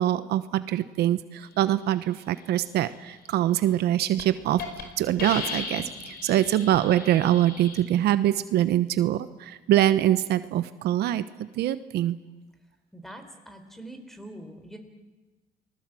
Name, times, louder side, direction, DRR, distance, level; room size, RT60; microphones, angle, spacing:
voice 1, 0.0-11.2 11.6-12.2, right 12 dB, 75° right, 13 dB, 1.0 m, -24 dB
Hiss, 3.6-3.8 4.2-4.3 4.6-4.8 5.2-7.8, left 5 dB, 65° left, 5.4 m, -36 dB
voice 2, 12.9-14.8, right 1 dB, ahead, 6 dB, 4.3 m, -43 dB
29.0 x 20.0 x 7.7 m, 1.2 s
cardioid pair, 110°, 17 cm